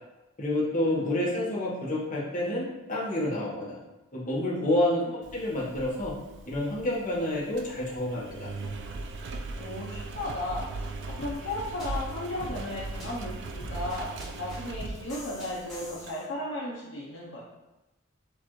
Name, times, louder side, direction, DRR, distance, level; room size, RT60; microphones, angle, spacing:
voice 1, 0.4-3.8 4.1-5.0 5.3-6.1 6.5-8.5, left 1 dB, 35° left, -6 dB, 1.1 m, -28 dB
voice 2, 0.9-1.2 5.0-5.1 9.6-14.1 14.4-17.4, left 1 dB, 60° left, -5 dB, 0.7 m, -35 dB
Engine, 5.2-16.1, right 3 dB, 55° right, 0.4 m, -39 dB
sound 1, 11.2-16.2, left 1 dB, ahead, 1.3 m, -43 dB
6.6 x 2.5 x 3.0 m, 1.0 s
head